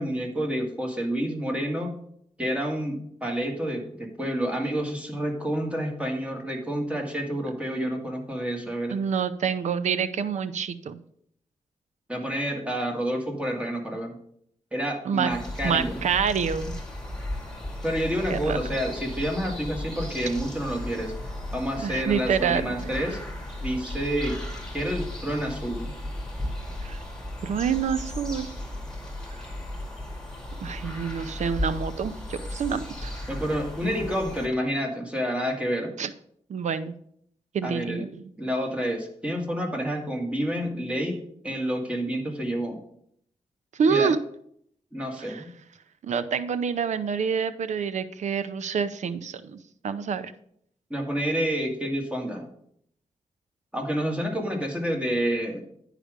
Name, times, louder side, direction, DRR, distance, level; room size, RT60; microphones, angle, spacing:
voice 1, 0.0-1.9 2.4-9.0 12.1-14.2 14.7-16.0 17.8-21.1 21.5-23.2 23.6-24.4 24.7-26.0 33.3-36.0 37.6-38.1 38.4-42.8 43.9-44.1 44.9-45.5 50.9-52.5 53.7-55.6, equal, 10° right, 1 dB, 1.9 m, -29 dB
voice 2, 8.9-11.0 15.0-15.3 15.6-16.8 18.3-18.6 21.8-23.1 26.8-27.0 27.4-28.5 30.6-33.2 36.0-36.1 36.5-37.0 37.5-38.3 43.8-44.2 45.2-45.4 46.0-50.3, right 6 dB, 75° right, 13 dB, 0.6 m, -27 dB
sound 1, 15.3-34.5, left 1 dB, 5° left, 2.1 m, -35 dB
10.0 x 5.0 x 5.1 m, 0.69 s
wide cardioid pair, 100°, 12 cm